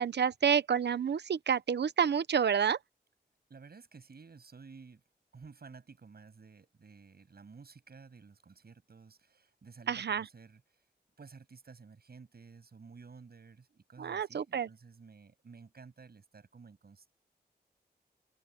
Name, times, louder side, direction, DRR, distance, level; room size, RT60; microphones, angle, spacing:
voice 1, 0.0-2.8 9.9-10.3 14.0-14.7, right 7 dB, 80° right, 0.9 m, -29 dB
voice 2, 3.5-5.0 5.3-10.6 11.2-17.1, right 5 dB, 65° right, 7.6 m, -53 dB
wide cardioid pair, 75°, 17 cm